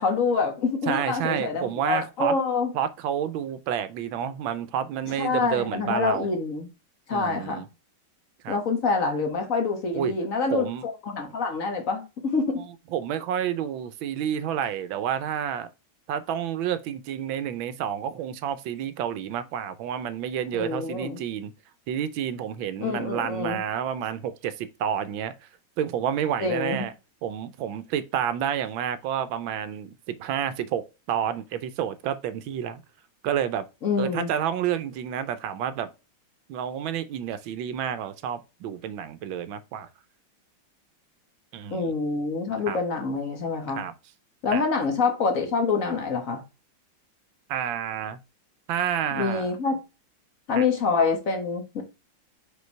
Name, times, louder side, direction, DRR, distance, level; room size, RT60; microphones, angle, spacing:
voice 1, 0.0-2.7 5.2-6.7 7.1-7.7 8.5-12.7 20.5-21.2 22.8-23.6 26.4-26.9 33.8-34.3 41.7-43.8 44.4-46.4 49.1-49.8 50.5-51.8, left 4 dB, 45° left, 1.5 m, -26 dB
voice 2, 0.9-2.3 2.7-6.3 7.1-7.7 8.4-8.6 9.9-10.1 10.5-10.8 12.9-15.7 16.1-21.5 21.9-25.5 25.8-26.9 27.2-32.8 33.2-33.7 34.0-35.9 36.5-39.9 41.5-41.9 42.5-42.8 43.7-43.9 44.5-44.6 47.5-48.2 48.7-49.5 50.5-50.7, right 9 dB, 75° right, 1.4 m, -29 dB
5.3 x 4.5 x 4.5 m
omnidirectional pair, 2.3 m